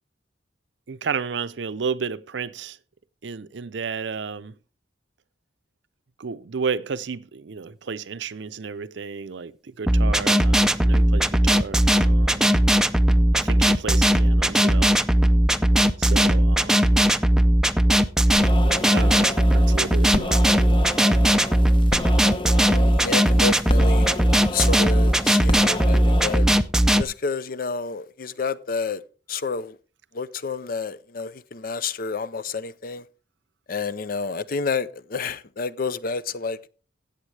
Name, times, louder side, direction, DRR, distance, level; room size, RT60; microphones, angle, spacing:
voice 1, 0.9-2.8 3.2-4.5 6.2-12.5 13.3-15.0 16.0-17.0 18.6-20.4, right 5 dB, 70° right, 0.6 m, -32 dB
sound 1, 9.9-27.0, equal, 5° right, 0.4 m, -18 dB
sound 2, 18.3-26.7, left 1 dB, 25° left, 0.8 m, -31 dB
voice 2, 22.7-24.2 24.5-26.4 27.0-29.0 29.3-29.7 30.1-33.0 33.7-36.7, left 4 dB, 50° left, 0.5 m, -29 dB
14.5 x 8.3 x 3.3 m
head